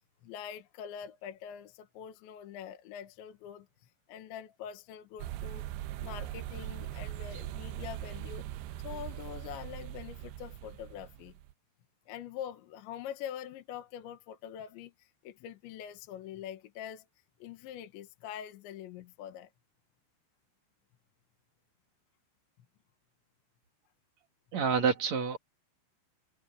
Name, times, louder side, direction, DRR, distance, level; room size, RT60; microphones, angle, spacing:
voice 1, 0.2-3.7 4.1-5.6 6.0-8.5 8.8-11.4 12.1-17.1 17.4-19.5, left 9 dB, 70° left, 3.6 m, -44 dB
sound 1, 5.2-11.5, right 14 dB, 85° right, 2.5 m, -41 dB
voice 2, 24.5-25.4, right 6 dB, 45° right, 2.9 m, -28 dB
omnidirectional pair, 5.8 m